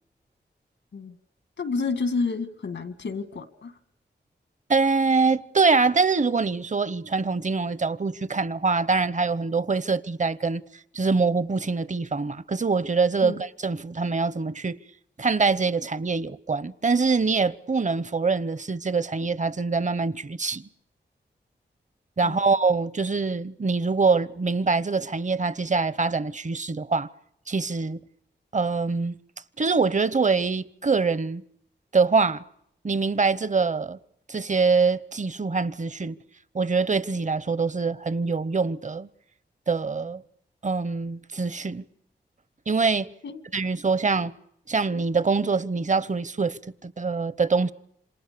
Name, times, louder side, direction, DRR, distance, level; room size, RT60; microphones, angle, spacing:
voice 1, 1.6-3.8 13.2-13.4 22.2-22.4 43.2-43.4, left 4 dB, 85° left, 2.1 m, -30 dB
voice 2, 4.7-10.6 10.9-14.8 15.2-20.7 22.2-27.1 27.5-28.0 28.5-29.1 29.6-31.4 31.9-32.4 32.8-34.0 34.3-36.2 36.5-39.1 39.7-40.2 40.6-41.8 42.7-43.1 43.5-44.3 44.7-47.7, right 4 dB, 40° right, 0.9 m, -24 dB
28.0 x 26.5 x 6.9 m
cardioid pair, 60°, 18 cm